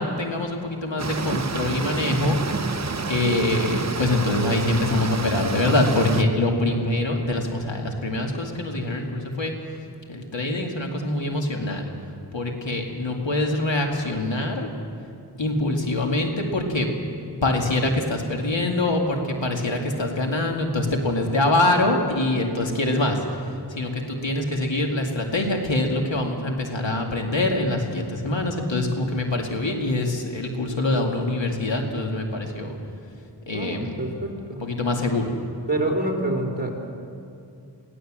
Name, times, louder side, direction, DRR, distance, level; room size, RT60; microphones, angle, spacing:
voice 1, 0.0-2.8 3.1-9.8 10.1-11.9 12.3-14.7 15.4-16.9 17.2-32.8 33.5-34.0 34.6-35.3, left 2 dB, 90° left, 2 dB, 2.3 m, -24 dB
sound 1, 1.0-6.2, right 4 dB, 40° right, 0.9 m, -29 dB
voice 2, 33.5-34.6 35.7-36.7, right 1 dB, 20° right, 0 dB, 4.0 m, -26 dB
22.5 x 17.0 x 7.6 m, 2.6 s
wide cardioid pair, 60°, 43 cm